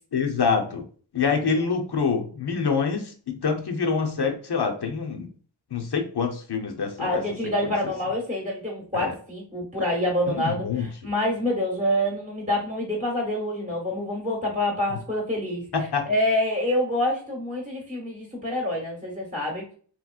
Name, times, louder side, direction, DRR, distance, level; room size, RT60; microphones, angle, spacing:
voice 1, 0.1-0.9 1.1-5.3 5.7-7.2 7.6-7.7 8.9-9.1 10.3-10.9 15.7-16.1, left 5 dB, 60° left, 3 dB, 0.7 m, -26 dB
voice 2, 7.0-15.6 16.1-19.6, left 1 dB, 15° right, -1 dB, 1.1 m, -26 dB
3.0 x 3.0 x 2.3 m, 0.44 s
wide cardioid pair, 50°, 46 cm